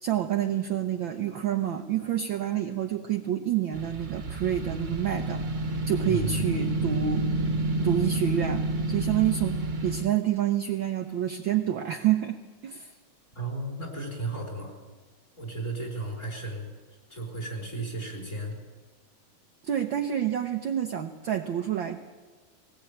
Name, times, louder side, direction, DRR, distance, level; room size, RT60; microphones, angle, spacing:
voice 1, 0.0-5.4 5.9-7.2 7.8-12.4 12.6-12.9 19.7-22.0, right 10 dB, 70° right, 5 dB, 1.1 m, -28 dB
sound 1, 3.7-10.1, right 2 dB, 30° right, 1.6 m, -29 dB
voice 2, 6.0-6.5 13.3-14.7 15.4-16.7 17.1-18.5, right 2 dB, 25° left, 1 dB, 5.0 m, -34 dB
20.5 x 19.0 x 8.7 m, 1.4 s
omnidirectional pair, 3.3 m